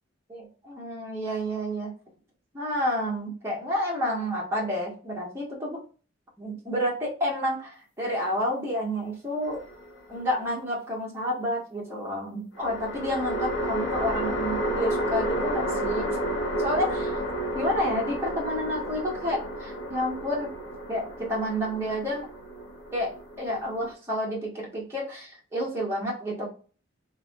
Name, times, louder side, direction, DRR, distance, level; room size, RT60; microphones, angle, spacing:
voice 1, 0.3-1.9 2.5-5.8 6.4-9.6 10.1-16.1 16.6-17.2 17.5-20.5 20.9-22.3 22.9-26.5, equal, 10° right, -4 dB, 1.4 m, -30 dB
sound 1, 9.4-10.3 12.6-23.9, right 1 dB, 80° left, 1.2 m, -31 dB
3.4 x 3.2 x 2.3 m, 0.37 s
head